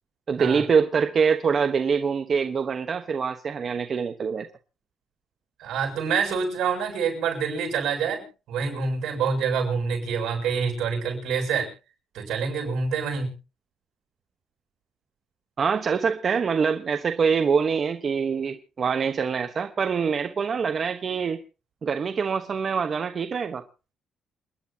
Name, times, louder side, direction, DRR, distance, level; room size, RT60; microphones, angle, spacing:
voice 1, 0.3-4.5 15.6-21.4 21.8-23.6, right 6 dB, 45° right, 7 dB, 1.2 m, -24 dB
voice 2, 5.6-11.7 12.1-13.3, right 6 dB, 80° right, 2 dB, 7.5 m, -26 dB
29.0 x 10.5 x 2.9 m, 0.34 s
cardioid pair, 90°, 0 cm